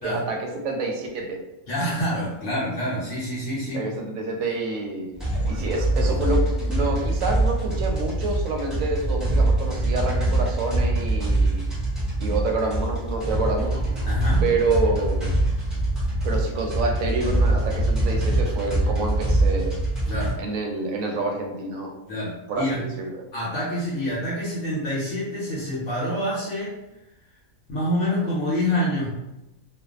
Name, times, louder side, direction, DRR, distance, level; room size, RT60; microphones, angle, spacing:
voice 1, 0.0-1.4 3.7-5.2 5.5-11.6 12.2-13.7 14.4-15.4 16.2-19.7 20.4-21.9 22.5-23.2, right 3 dB, 70° right, 1 dB, 0.9 m, -27 dB
voice 2, 1.7-3.9 14.1-14.5 20.1-20.3 22.1-22.8 23.3-26.8 27.7-29.1, equal, 65° left, -7 dB, 1.0 m, -27 dB
sound 1, 5.2-20.3, right 1 dB, ahead, 0.6 m, -24 dB
2.5 x 2.3 x 2.4 m, 0.96 s
omnidirectional pair, 1.5 m